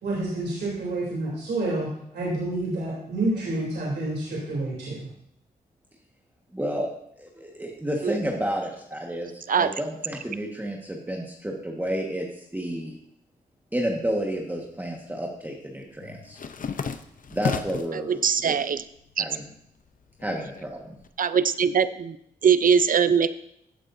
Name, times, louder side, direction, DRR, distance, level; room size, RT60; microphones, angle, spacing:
voice 1, 0.0-1.9 2.1-5.1, right 2 dB, 80° right, -6 dB, 3.4 m, -28 dB
voice 2, 6.5-6.9 7.2-12.9 13.7-16.4 17.3-18.6 19.2-19.5 20.2-20.9, right 1 dB, 10° right, -1 dB, 1.6 m, -31 dB
sound 1, 14.1-14.9 15.2-18.0 18.5-19.1 19.4-21.1, left 6 dB, 50° left, 0.7 m, -34 dB
voice 3, 17.9-18.8 19.2-19.3 21.2-22.2 22.4-23.3, right 7 dB, 55° right, 14 dB, 0.6 m, -21 dB
15.5 x 8.3 x 2.7 m, 0.74 s
cardioid pair, 70°, 17 cm